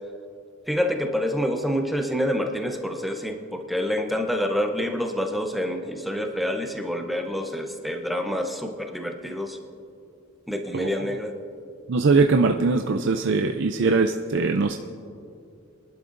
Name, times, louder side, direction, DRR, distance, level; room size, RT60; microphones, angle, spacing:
voice 1, 0.7-9.6 10.5-11.3, equal, ahead, 3 dB, 0.7 m, -27 dB
voice 2, 11.9-14.8, right 4 dB, 55° right, 4 dB, 0.4 m, -21 dB
24.0 x 11.5 x 2.6 m, 2.5 s
head